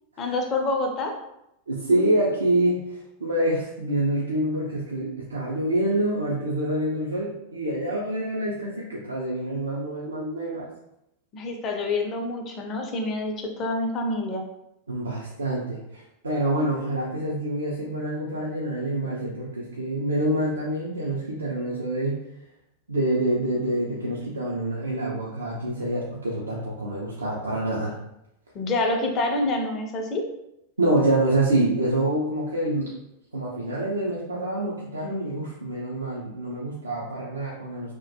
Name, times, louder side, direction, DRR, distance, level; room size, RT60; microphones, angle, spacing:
voice 1, 0.2-1.1 11.3-14.4 28.5-30.2, left 2 dB, 30° left, 2 dB, 0.4 m, -27 dB
voice 2, 1.7-10.7 14.9-22.2 22.9-27.9 30.8-32.9 33.3-37.9, right 1 dB, 75° right, -5 dB, 0.4 m, -26 dB
2.2 x 2.1 x 2.6 m, 0.84 s
figure-of-eight pair, 90°, 0 cm